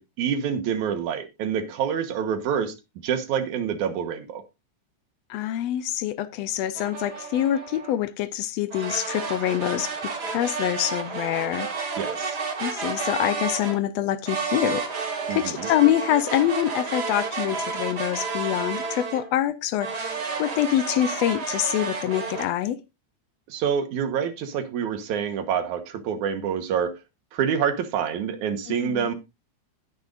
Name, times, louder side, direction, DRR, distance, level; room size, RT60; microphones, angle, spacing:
voice 1, 0.0-2.7 3.0-4.4 11.9-12.4 15.3-15.7 23.5-26.9 27.3-29.1, right 7 dB, 85° right, 2.6 m, -27 dB
voice 2, 5.3-11.7 12.6-22.8 28.7-29.1, left 12 dB, 75° left, 1.7 m, -25 dB
sound 1, 6.8-8.0 8.7-13.8 14.3-19.3 19.8-22.5, right 5 dB, 40° right, 2.0 m, -31 dB
19.0 x 6.5 x 2.5 m
omnidirectional pair, 3.4 m